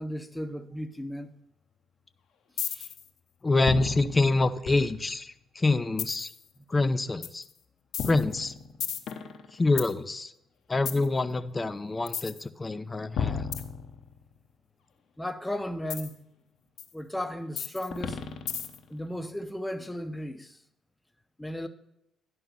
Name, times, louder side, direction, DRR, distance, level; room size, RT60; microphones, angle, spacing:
voice 1, 0.0-1.3 2.7-2.9 15.2-16.1 16.9-18.2 18.9-20.6 21.4-21.7, left 1 dB, 10° left, 1.0 m, -35 dB
sound 1, 2.6-3.1 3.7-5.2 6.0-6.4 7.2-7.5 7.9-9.9 10.9-11.1 12.1-12.4 13.2-14.3 15.9-16.1 16.8-16.9 17.6-18.9, left 7 dB, 60° left, 0.9 m, -33 dB
voice 2, 3.4-6.3 6.7-7.4 8.1-8.5 9.5-10.3 10.7-13.5, left 3 dB, 25° left, 0.7 m, -26 dB
11.0 x 5.6 x 5.6 m
hypercardioid pair, 45°, 0 cm